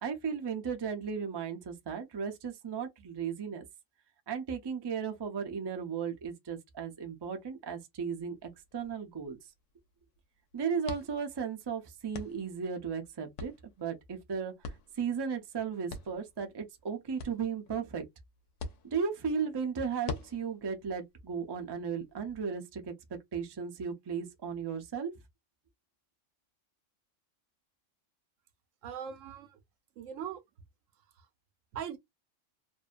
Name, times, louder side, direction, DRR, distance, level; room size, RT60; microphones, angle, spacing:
voice 1, 0.0-3.7 4.3-9.4 10.5-13.5 13.8-14.5 15.0-18.0 18.8-25.1, right 6 dB, 45° right, 0.3 m, -35 dB
sound 1, 8.2-22.4, left 4 dB, 80° left, 0.9 m, -48 dB
voice 2, 28.8-29.6 30.0-30.4 31.7-32.0, right 8 dB, 90° right, 1.0 m, -40 dB
2.6 x 2.2 x 2.4 m
omnidirectional pair, 1.3 m